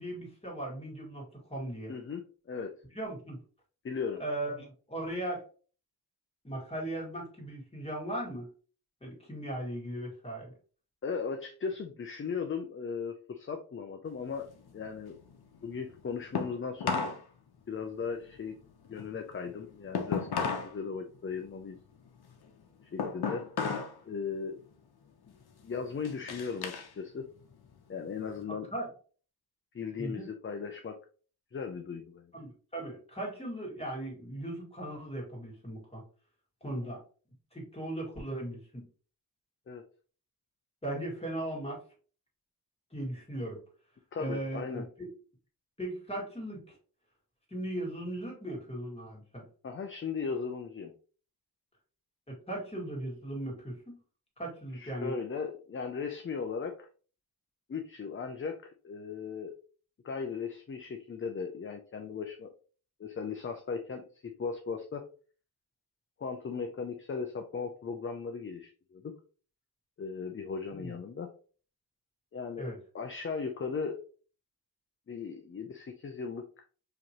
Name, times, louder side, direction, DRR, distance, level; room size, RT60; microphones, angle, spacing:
voice 1, 0.0-1.9 2.9-3.4 4.2-5.4 6.4-8.5 9.0-10.5 28.7-28.9 30.0-30.3 32.3-36.0 36.6-37.0 37.5-38.9 40.8-41.8 42.9-43.6 44.2-45.1 45.8-46.8 47.5-49.4 52.3-54.0 54.4-55.1 70.7-70.9 72.6-72.8, right 1 dB, 15° left, -3 dB, 1.9 m, -38 dB
voice 2, 1.9-2.2 2.5-2.7 3.8-4.2 11.0-14.5 14.7-15.2 15.6-17.1 17.7-18.5 18.9-21.8 22.9-23.5 24.0-24.6 25.6-27.3 27.9-28.7 29.7-31.0 31.5-32.3 36.6-36.9 39.7-39.8 44.1-44.9 49.6-50.9 54.7-56.9 57.7-59.5 60.0-62.5 63.0-65.0 66.2-69.0 70.0-71.3 72.3-74.0 75.1-76.4, left 5 dB, 35° left, 5 dB, 0.5 m, -37 dB
sound 1, 14.1-17.2 17.5-20.8 21.1-24.0 24.3-24.7 25.3-26.9 27.3-28.4, left 5 dB, 75° left, 0.8 m, -36 dB
5.0 x 2.9 x 2.9 m, 0.39 s
wide cardioid pair, 135°, 38 cm